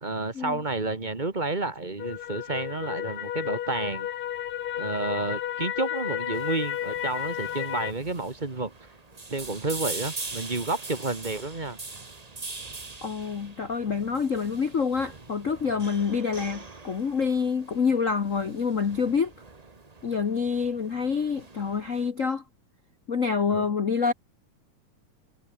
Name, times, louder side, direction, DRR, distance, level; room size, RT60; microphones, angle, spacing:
voice 1, 0.0-4.1 4.8-8.7 9.3-11.8 15.7-15.8 23.5-23.7, right 3 dB, 20° right, 1.3 m, -30 dB
sound 1, 2.0-7.9, left 11 dB, 65° left, 2.5 m, -32 dB
sound 2, 6.3-22.1, right 3 dB, 90° right, 0.3 m, -42 dB
voice 2, 13.0-19.3 20.0-22.4 23.1-24.1, left 5 dB, 85° left, 0.7 m, -27 dB
omnidirectional pair, 3.5 m